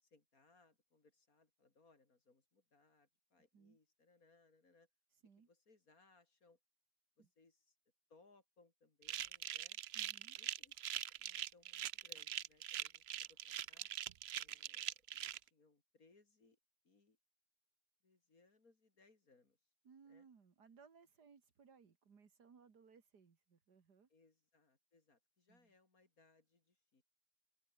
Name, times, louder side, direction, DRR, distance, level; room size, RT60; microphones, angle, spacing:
voice 1, 0.0-4.9 5.5-6.6 7.2-7.8 8.1-9.8 10.4-13.9 14.4-16.6 16.8-17.2 18.0-19.6 20.1-20.3 24.1-27.0, left 3 dB, 60° left, 3.8 m, -71 dB
sound 1, 9.0-15.4, right 11 dB, 65° right, 0.6 m, -43 dB
voice 2, 9.9-10.4 19.8-24.1 25.5-25.7, right 6 dB, 80° right, 2.7 m, -65 dB
omnidirectional pair, 1.7 m